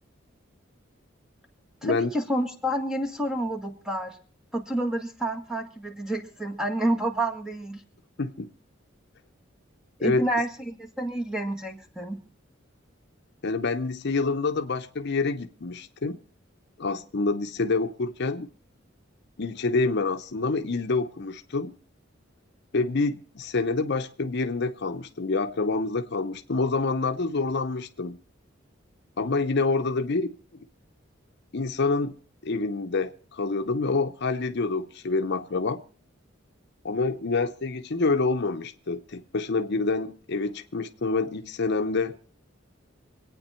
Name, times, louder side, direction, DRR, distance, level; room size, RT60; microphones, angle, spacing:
voice 1, 1.8-4.2 4.5-7.8 10.0-12.2, right 1 dB, 5° right, 1.9 m, -29 dB
voice 2, 8.2-8.5 10.0-10.3 13.4-16.2 16.8-18.5 19.4-21.7 22.7-28.2 29.2-30.7 31.5-32.2 32.4-35.8 36.8-42.2, left 3 dB, 60° left, 0.7 m, -27 dB
25.0 x 9.0 x 4.4 m
head